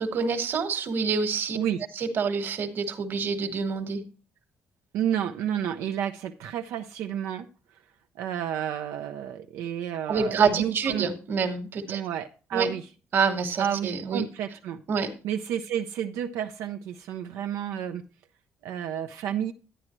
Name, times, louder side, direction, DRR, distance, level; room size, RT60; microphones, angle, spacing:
voice 1, 0.0-1.6 2.0-4.0 10.1-12.0 12.5-12.7 13.1-14.2 14.9-15.1, right 5 dB, 50° right, 1.4 m, -27 dB
voice 2, 4.9-7.5 8.2-11.1 11.9-12.9 13.6-18.0 18.6-19.5, right 9 dB, 90° right, 0.5 m, -31 dB
11.0 x 9.7 x 3.0 m
cardioid pair, 125°, 5 cm